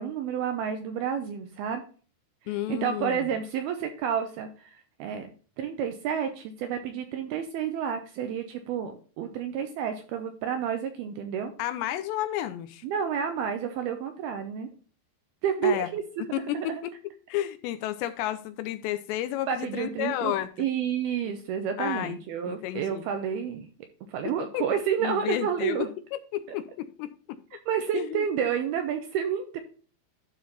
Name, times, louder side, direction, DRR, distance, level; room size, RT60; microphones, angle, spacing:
voice 1, 0.0-1.8 2.4-5.3 5.6-11.5 12.8-14.7 15.4-16.0 16.5-16.8 19.5-23.7 24.1-25.9 27.7-29.6, right 8 dB, 75° right, 6 dB, 2.3 m, -30 dB
voice 2, 2.5-3.3 11.6-12.8 15.6-15.9 16.3-16.9 17.3-20.5 21.8-22.2 22.5-23.0 24.3-24.7 25.0-27.4 27.9-28.2, left 13 dB, 80° left, 11 dB, 2.6 m, -31 dB
12.0 x 4.2 x 4.1 m, 0.40 s
omnidirectional pair, 5.3 m